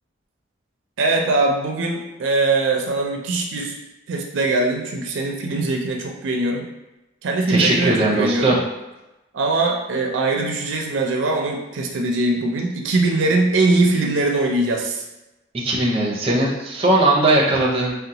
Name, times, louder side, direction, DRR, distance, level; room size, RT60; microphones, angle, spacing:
voice 1, 1.0-3.8 4.1-6.7 7.2-8.6 9.3-15.0, right 2 dB, 80° right, 1 dB, 0.4 m, -21 dB
voice 2, 7.5-8.6 15.5-17.9, right 2 dB, 30° right, -3 dB, 0.5 m, -19 dB
3.8 x 2.1 x 2.8 m, 1.0 s
head